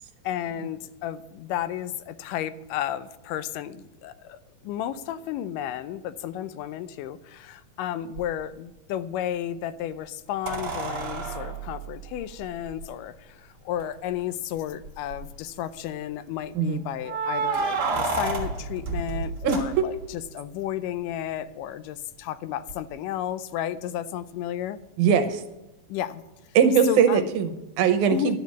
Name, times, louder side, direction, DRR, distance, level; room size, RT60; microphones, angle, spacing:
voice 1, 0.2-4.4 4.6-24.8 25.9-26.2 26.9-27.3 28.1-28.3, left 11 dB, 90° left, 14 dB, 2.2 m, -32 dB
sound 1, 8.2-8.3 10.5-12.8 13.8-13.9 14.2-14.3 14.8-15.3 17.0-20.2 22.7-22.8, right 4 dB, 45° right, 1.5 m, -30 dB
voice 2, 19.4-19.9 25.0-25.4 26.6-28.4, right 7 dB, 75° right, 9 dB, 2.2 m, -21 dB
11.5 x 5.2 x 8.3 m, 0.97 s
omnidirectional pair, 3.7 m